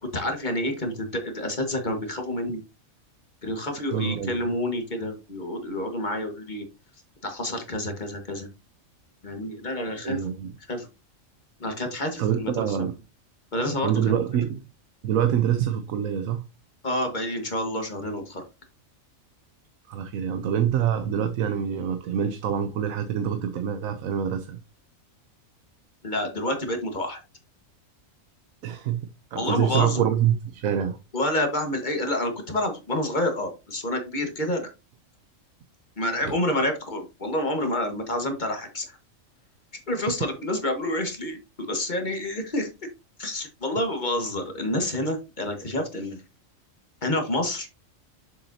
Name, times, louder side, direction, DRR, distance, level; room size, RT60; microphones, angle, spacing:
voice 1, 0.0-2.6 3.4-6.6 7.2-8.5 9.2-10.2 10.7-10.9 11.6-12.8 13.5-14.1 16.8-18.4 26.0-27.2 29.3-30.0 31.1-34.7 36.0-39.0 39.9-42.7 43.2-46.2 47.0-47.7, left 1 dB, 35° left, 1.6 m, -28 dB
voice 2, 3.9-4.5 10.0-10.5 12.2-12.9 13.8-14.6 15.0-16.5 19.9-24.6 28.6-31.0, right 9 dB, 90° right, 1.1 m, -26 dB
7.0 x 6.8 x 2.7 m
omnidirectional pair, 1.4 m